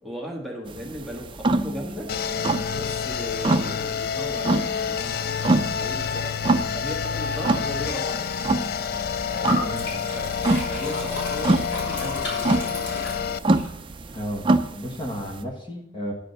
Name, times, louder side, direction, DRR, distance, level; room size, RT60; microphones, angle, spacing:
voice 1, 0.0-2.1 2.7-8.3 9.3-9.8 10.1-10.3 10.7-13.4, equal, ahead, 0 dB, 1.4 m, -37 dB
sound 1, 0.7-15.4, right 2 dB, 30° right, 0.5 m, -27 dB
sound 2, 2.1-13.4, left 7 dB, 55° left, 0.3 m, -28 dB
Liquid, 9.5-13.7, left 1 dB, 90° left, 4.2 m, -33 dB
voice 2, 9.6-10.3 14.1-14.5 14.7-16.1, equal, 25° left, 0 dB, 1.3 m, -33 dB
9.6 x 5.1 x 6.6 m, 0.74 s
head